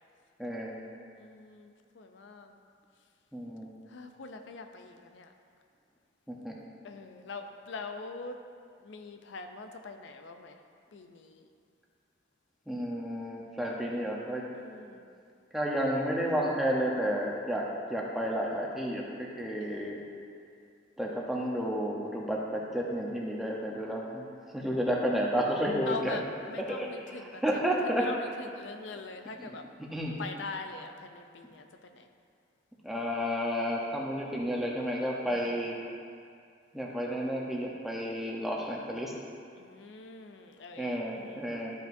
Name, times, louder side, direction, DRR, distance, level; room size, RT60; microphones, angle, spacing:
voice 1, 0.4-0.7 3.3-3.7 6.3-6.6 12.7-14.4 15.5-20.0 21.0-24.3 24.5-26.2 26.7-26.9 27.4-28.1 29.4-29.5 29.9-30.1 32.8-35.7 36.7-39.1 40.8-41.7, equal, ahead, -3 dB, 0.8 m, -31 dB
voice 2, 1.1-2.6 3.9-5.3 6.8-8.4 8.8-10.6 10.9-11.5 14.5-15.1 19.6-19.9 25.9-29.7 30.2-32.1 35.3-35.6 39.6-41.5, left 3 dB, 85° left, 6 dB, 0.5 m, -43 dB
12.5 x 5.2 x 2.6 m, 2.3 s
head